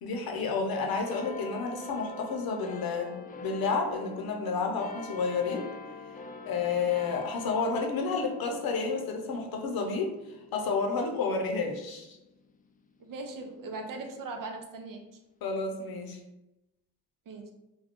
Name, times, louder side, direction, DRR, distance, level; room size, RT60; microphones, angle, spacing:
voice 1, 0.0-5.7 6.5-10.1 10.5-12.2 15.4-16.2, left 4 dB, 75° left, 2 dB, 0.7 m, -30 dB
sound 1, 1.0-13.9 14.6-14.7, left 2 dB, 25° left, 0.3 m, -46 dB
voice 2, 13.0-15.0 17.3-17.5, right 3 dB, 65° right, 4 dB, 0.6 m, -39 dB
2.5 x 2.2 x 3.5 m, 0.93 s
cardioid pair, 60°, 36 cm